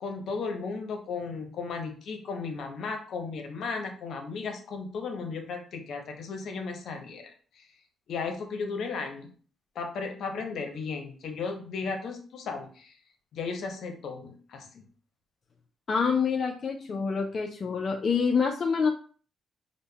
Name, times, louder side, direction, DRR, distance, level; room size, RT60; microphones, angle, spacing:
voice 1, 0.0-7.7 8.1-9.3 9.7-13.0 13.3-14.8, left 4 dB, 65° left, 4 dB, 0.7 m, -35 dB
voice 2, 15.9-18.9, left 5 dB, 45° left, 2 dB, 0.3 m, -26 dB
5.1 x 2.1 x 2.2 m, 0.43 s
cardioid pair, 90°, 0 cm